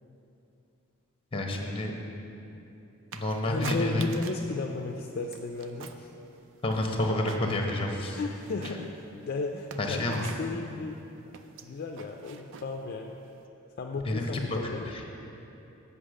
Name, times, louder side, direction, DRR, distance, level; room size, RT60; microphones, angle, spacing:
voice 1, 1.3-1.9 3.1-4.1 6.6-8.2 8.6-8.7 9.8-10.2 14.0-15.0, left 1 dB, 25° left, 1 dB, 0.9 m, -30 dB
sound 1, 3.1-4.5 4.8-6.1 6.4-7.7 8.0-13.4, right 5 dB, 60° right, 0.4 m, -44 dB
voice 2, 3.4-6.1 8.2-8.9 9.3-11.0 11.6-13.2 13.8-14.8, left 3 dB, 45° left, 2 dB, 0.4 m, -34 dB
8.2 x 5.6 x 6.3 m, 2.9 s
head